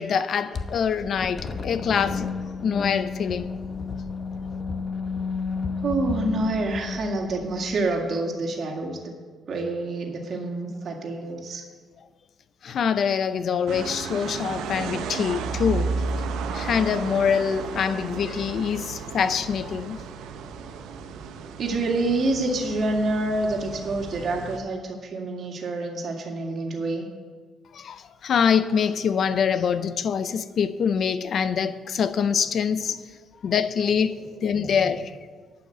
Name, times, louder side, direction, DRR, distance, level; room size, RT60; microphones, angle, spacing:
voice 1, 0.0-2.3 2.6-3.5 12.6-16.0 16.5-20.0 27.7-33.0 33.4-35.1, left 7 dB, 60° left, 0.5 m, -25 dB
sound 1, 0.5-7.9, left 4 dB, 45° left, 0.8 m, -32 dB
voice 2, 5.8-9.1 9.5-11.6 21.6-27.1 34.4-34.9, right 2 dB, 55° right, 2.0 m, -27 dB
sound 2, 13.7-24.6, right 5 dB, 90° right, 0.7 m, -33 dB
11.5 x 5.7 x 7.9 m
cardioid pair, 90°, 0 cm